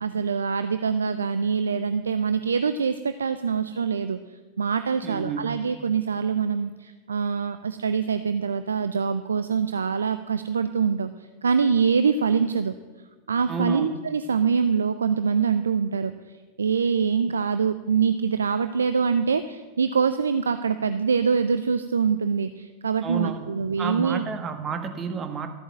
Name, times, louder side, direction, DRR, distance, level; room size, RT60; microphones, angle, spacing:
voice 1, 0.0-4.2 4.6-11.1 11.4-12.7 13.3-16.1 16.6-24.2, right 6 dB, 70° right, 11 dB, 0.5 m, -24 dB
voice 2, 5.0-5.6 13.5-14.0 23.0-23.5 23.8-25.5, right 6 dB, 25° right, 7 dB, 1.4 m, -30 dB
13.5 x 8.7 x 7.6 m, 1.3 s
figure-of-eight pair, 90°, 0 cm